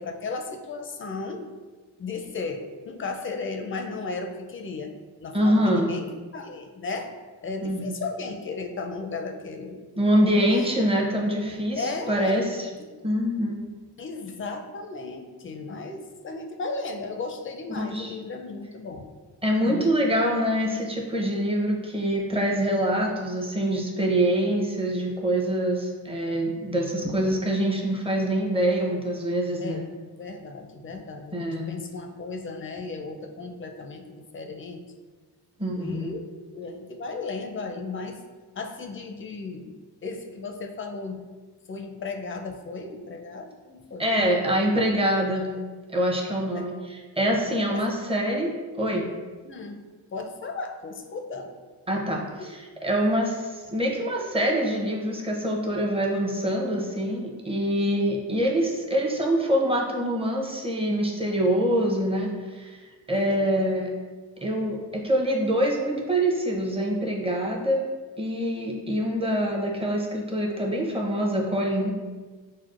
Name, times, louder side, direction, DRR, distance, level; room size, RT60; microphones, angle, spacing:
voice 1, 0.0-1.4 2.0-4.9 5.2-7.1 7.4-10.7 11.8-12.4 12.8-12.9 14.0-19.1 19.6-20.2 29.6-29.9 30.2-34.8 35.7-36.3 36.5-38.2 38.5-39.7 40.0-41.3 41.7-44.8 46.5-46.7 47.7-48.0 49.4-49.8 50.1-51.5 52.4-52.5 63.1-63.6, left 3 dB, 30° left, 4 dB, 0.4 m, -35 dB
voice 2, 5.3-5.9 7.6-8.0 10.0-12.7 13.0-13.6 17.8-18.2 19.4-29.8 31.3-31.8 35.6-36.2 44.0-45.5 45.9-49.1 51.9-62.8 63.1-63.9 64.4-67.8 68.2-71.9, equal, 15° right, -1 dB, 0.7 m, -25 dB
6.2 x 2.1 x 2.4 m, 1.4 s
cardioid pair, 85°, 40 cm